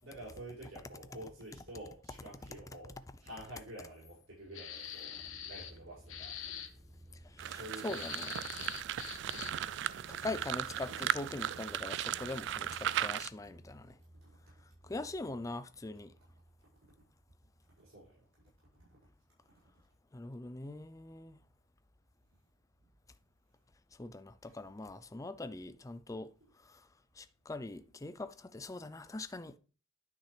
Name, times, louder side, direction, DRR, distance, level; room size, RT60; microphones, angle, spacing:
voice 1, 0.0-2.9 3.2-6.4 7.5-8.3 14.2-14.3 17.8-18.2 18.8-18.9 24.4-24.5, right 1 dB, 85° right, 5.2 m, -49 dB
sound 1, 4.5-5.8 6.1-6.7 7.8-9.7, left 9 dB, 80° left, 1.0 m, -44 dB
sound 2, 5.1-18.2 18.5-19.1, right 1 dB, 25° right, 1.5 m, -58 dB
voice 2, 7.3-8.3 9.3-9.4 10.1-13.9 14.8-16.1 20.1-21.4 24.0-26.3 26.7-26.8 27.2-29.6, left 2 dB, 15° left, 0.4 m, -42 dB
sound 3, 7.4-13.3, right 10 dB, 60° right, 0.3 m, -37 dB
10.0 x 6.0 x 3.3 m
head